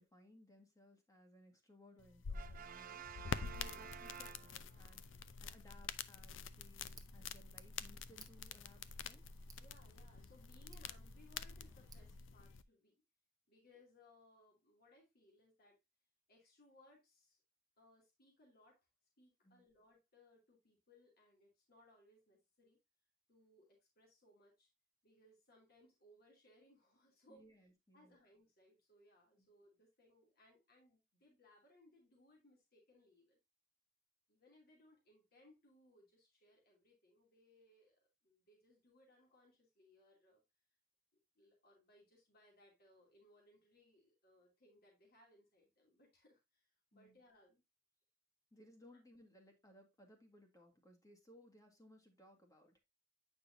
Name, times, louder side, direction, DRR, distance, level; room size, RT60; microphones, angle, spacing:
voice 1, 0.0-3.0 3.5-5.1 5.4-9.2 19.4-19.6 27.3-28.2 29.4-29.5 46.9-47.2 48.5-52.8, left 1 dB, 20° left, 4 dB, 1.7 m, -64 dB
sound 1, 2.0-12.6, left 6 dB, 70° left, 0.5 m, -48 dB
Brass instrument, 2.3-5.0, right 8 dB, 45° right, 0.4 m, -52 dB
Tick, 6.1-12.2, right 3 dB, 20° right, 0.9 m, -63 dB
voice 2, 9.5-13.0 13.5-15.8 16.3-17.4 17.8-18.9 19.2-22.8 23.3-24.7 25.0-27.4 27.9-33.4 34.3-40.4 41.3-47.6, left 1 dB, 55° left, 0 dB, 2.6 m, -68 dB
8.7 x 5.3 x 2.6 m, 0.22 s
head